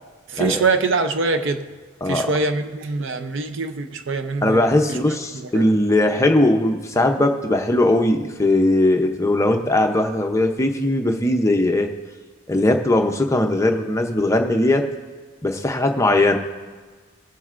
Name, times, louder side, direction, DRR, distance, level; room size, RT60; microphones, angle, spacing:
voice 1, 0.3-1.7 2.1-4.6 4.9-5.0 5.3-5.7, right 4 dB, 55° right, 7 dB, 0.6 m, -23 dB
voice 2, 4.4-11.9 12.5-14.9 15.4-16.4, left 1 dB, 15° left, 4 dB, 0.6 m, -19 dB
22.5 x 7.6 x 2.5 m, 1.4 s
head